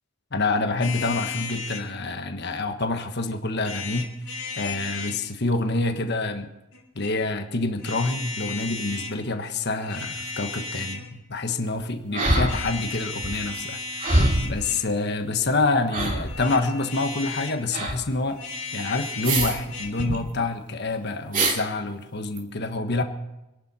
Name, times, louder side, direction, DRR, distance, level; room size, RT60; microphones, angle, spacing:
voice 1, 0.3-4.1 4.6-6.5 6.9-18.4 18.7-23.0, left 3 dB, 50° left, 6 dB, 1.4 m, -27 dB
sound 1, 0.8-1.9 3.6-5.2 6.7-7.1 7.8-9.2 9.7-11.1 12.4-14.9 16.2-17.6 18.3-20.0, left 4 dB, 75° left, 4.0 m, -35 dB
sound 2, 12.1-12.9 13.2-13.4 14.0-14.6 15.5-15.6 15.9-16.5 17.7-18.0 19.2-19.6 19.9-20.2 21.3-21.6 22.4-22.5, right 2 dB, 40° right, 2.5 m, -24 dB
26.5 x 11.5 x 4.3 m, 0.94 s
head